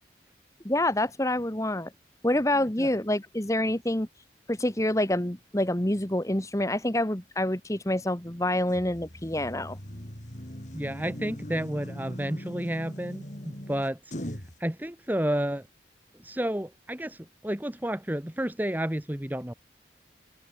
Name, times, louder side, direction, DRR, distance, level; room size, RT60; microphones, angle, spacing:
voice 1, 0.6-1.9 2.2-4.1 4.5-9.8, left 1 dB, 20° left, 1.5 m, -27 dB
sound 1, 8.7-14.6, equal, 40° left, 4.5 m, -40 dB
voice 2, 10.7-14.0 14.6-15.7 16.2-19.5, right 1 dB, 10° right, 0.9 m, -31 dB
open air
head